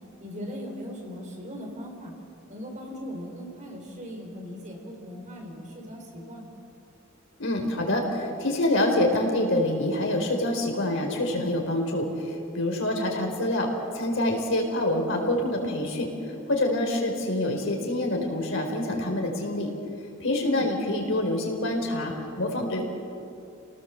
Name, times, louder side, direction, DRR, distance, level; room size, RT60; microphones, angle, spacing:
voice 1, 0.2-2.1 2.5-6.5 20.4-20.7, equal, 35° right, 0 dB, 5.2 m, -39 dB
voice 2, 7.4-16.1 16.5-19.7 20.2-22.8, left 1 dB, 65° left, 2 dB, 4.5 m, -26 dB
28.5 x 18.5 x 7.7 m, 2.6 s
head